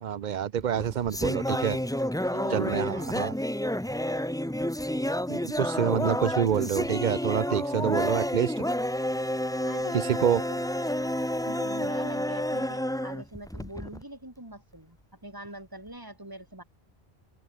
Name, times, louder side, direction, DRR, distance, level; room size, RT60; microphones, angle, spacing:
voice 1, 0.0-1.8 2.5-3.3 5.3-8.5 9.9-10.4, right 9 dB, 55° right, 0.7 m, -27 dB
sound 1, 0.6-14.0, equal, 5° left, 0.9 m, -30 dB
voice 2, 2.3-3.1 9.7-11.1 11.4-16.6, right 1 dB, 20° right, 4.3 m, -43 dB
omnidirectional pair, 1.1 m